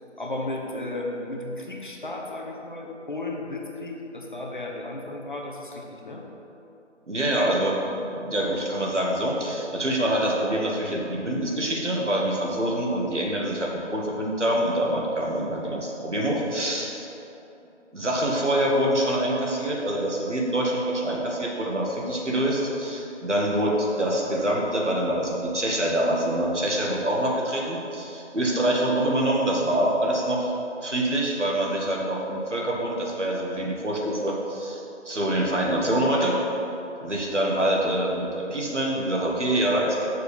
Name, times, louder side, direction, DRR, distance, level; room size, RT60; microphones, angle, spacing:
voice 1, 0.2-6.2, left 2 dB, 40° left, 0 dB, 1.0 m, -34 dB
voice 2, 7.1-17.1 17.9-30.5 30.8-34.8 35.1-36.4 37.0-40.1, right 1 dB, 75° right, -2 dB, 2.0 m, -25 dB
6.7 x 6.2 x 6.8 m, 3.0 s
figure-of-eight pair, 165°, 36 cm